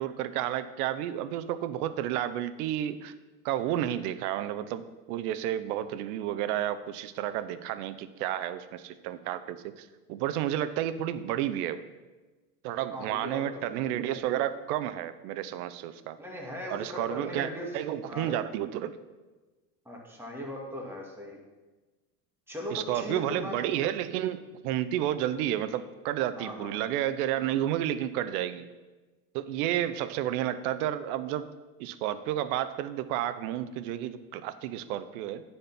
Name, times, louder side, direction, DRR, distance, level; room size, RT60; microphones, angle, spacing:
voice 1, 0.0-3.1 3.4-11.8 12.6-16.2 16.7-17.5 17.7-19.0 22.7-28.7 29.3-31.5 31.8-35.4, right 11 dB, 65° right, 13 dB, 0.7 m, -31 dB
voice 2, 12.9-13.4 13.7-13.8 16.2-17.7 18.1-18.4 19.9-21.4 22.5-23.6 26.3-26.7, equal, 5° right, -2 dB, 2.3 m, -38 dB
9.8 x 4.4 x 5.7 m, 1.2 s
hypercardioid pair, 95°, 48 cm